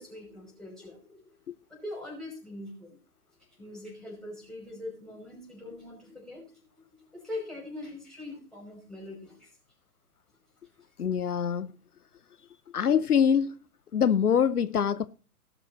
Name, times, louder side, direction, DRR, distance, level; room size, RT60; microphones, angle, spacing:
voice 1, 0.0-1.4 1.7-3.0 3.6-6.6 6.9-9.5, left 2 dB, ahead, 5.4 m, -42 dB
voice 2, 11.0-11.7 12.7-13.5 13.9-15.1, left 7 dB, 75° left, 0.7 m, -24 dB
18.0 x 6.2 x 4.2 m
figure-of-eight pair, 120°, 45 cm